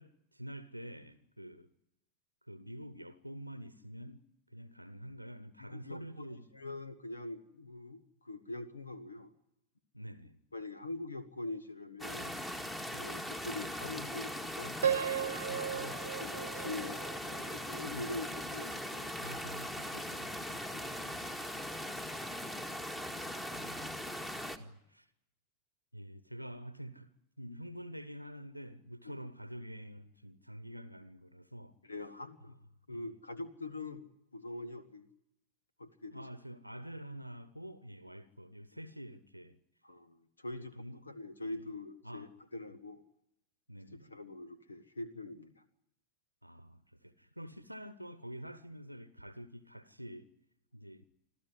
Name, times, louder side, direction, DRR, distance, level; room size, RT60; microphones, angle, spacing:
voice 1, 0.0-1.7 2.4-4.2 4.5-6.5 9.9-10.4 12.9-13.3 15.4-15.9 19.2-20.7 21.1-21.2 23.5-23.9 24.6-25.1 25.9-27.1 27.4-31.7 32.9-33.1 36.1-39.6 40.6-41.0 41.4-41.7 42.0-42.3 43.7-44.1 46.4-50.3 50.7-51.1, equal, 90° right, 0.9 m, -48 dB
voice 2, 5.7-6.3 6.5-9.3 10.5-12.3 12.9-14.8 15.2-15.4 15.7-17.0 17.3-19.3 20.7-20.9 29.0-29.2 31.8-32.5 32.9-35.1 35.8-36.2 39.8-40.7 41.1-43.0 44.1-45.5, left 2 dB, 80° left, 1.5 m, -44 dB
sound 1, 12.0-24.6, equal, 10° left, 1.8 m, -40 dB
Piano, 14.8-17.8, right 8 dB, 65° right, 0.8 m, -35 dB
26.0 x 14.5 x 9.8 m
figure-of-eight pair, 90°, 0 cm